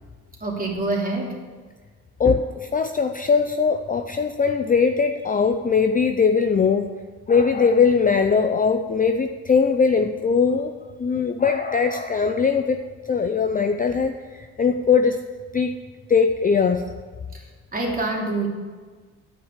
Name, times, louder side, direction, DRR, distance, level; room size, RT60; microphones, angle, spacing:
voice 1, 0.4-1.4 17.7-18.5, right 2 dB, 25° right, -2 dB, 2.8 m, -25 dB
voice 2, 2.2-6.9 7.3-10.7 11.0-12.8 13.1-15.2 15.5-15.8 16.1-16.8, left 5 dB, 25° left, 7 dB, 0.5 m, -20 dB
10.0 x 6.0 x 7.5 m, 1.5 s
cardioid pair, 80°, 36 cm